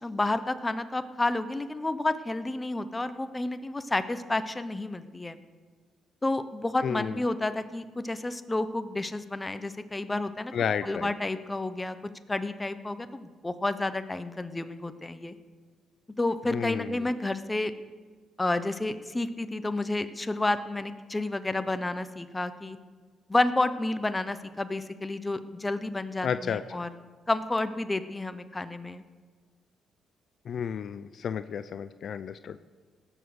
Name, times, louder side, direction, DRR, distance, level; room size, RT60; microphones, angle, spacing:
voice 1, 0.0-5.4 6.2-10.5 10.8-12.0 12.3-15.4 16.2-17.7 18.4-22.8 23.3-26.9 27.3-29.0, left 2 dB, 15° left, 11 dB, 0.8 m, -30 dB
voice 2, 6.8-7.2 10.5-11.1 16.5-17.0 26.2-26.8 30.5-32.6, left 7 dB, 60° left, 12 dB, 0.4 m, -32 dB
17.5 x 7.1 x 6.4 m, 1.5 s
cardioid pair, 90°, 0 cm